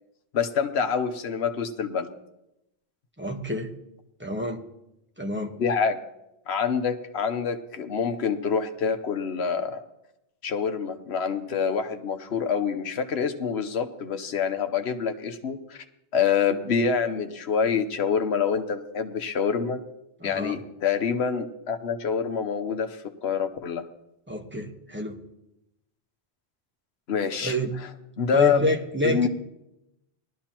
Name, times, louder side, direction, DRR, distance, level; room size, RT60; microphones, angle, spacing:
voice 1, 0.3-2.1 5.6-6.0 6.5-9.8 10.4-15.8 16.1-19.8 20.2-23.8 27.1-27.9 28.2-28.6 29.0-29.3, left 6 dB, 75° left, 8 dB, 1.2 m, -26 dB
voice 2, 3.2-3.7 4.2-4.6 5.2-5.5 20.2-20.6 24.3-25.2 27.4-27.7 28.3-29.3, equal, 10° right, 3 dB, 1.2 m, -28 dB
19.5 x 12.5 x 3.0 m, 0.87 s
omnidirectional pair, 1.1 m